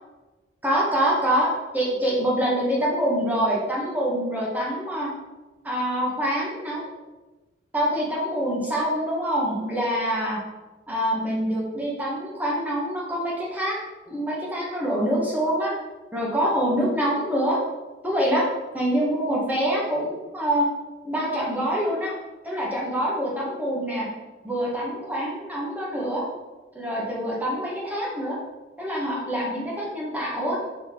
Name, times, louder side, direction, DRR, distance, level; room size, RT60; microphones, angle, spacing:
voice 1, 0.6-5.1 5.6-6.8 7.7-10.4 10.9-13.8 14.1-15.7 16.1-17.6 18.0-18.5 18.7-20.7 21.0-22.1 22.4-24.1 24.4-26.2 26.7-28.4 28.8-30.6, equal, 10° right, -5 dB, 1.3 m, -25 dB
5.5 x 4.1 x 4.3 m, 1.2 s
head